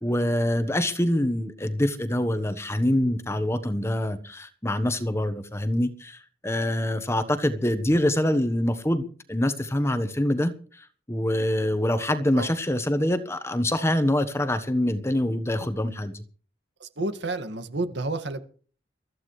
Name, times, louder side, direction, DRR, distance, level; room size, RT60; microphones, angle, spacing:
voice 1, 0.0-16.2, left 1 dB, 15° left, 1.2 m, -25 dB
voice 2, 16.8-18.4, right 2 dB, 75° right, 2.0 m, -30 dB
23.0 x 14.5 x 3.3 m
head